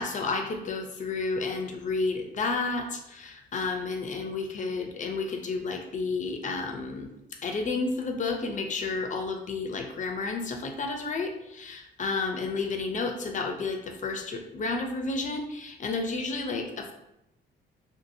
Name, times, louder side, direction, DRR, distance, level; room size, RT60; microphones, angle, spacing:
voice 1, 0.0-7.1 7.4-16.9, left 3 dB, 40° left, 4 dB, 0.5 m, -31 dB
2.8 x 2.5 x 2.6 m, 0.85 s
cardioid pair, 90°, 20 cm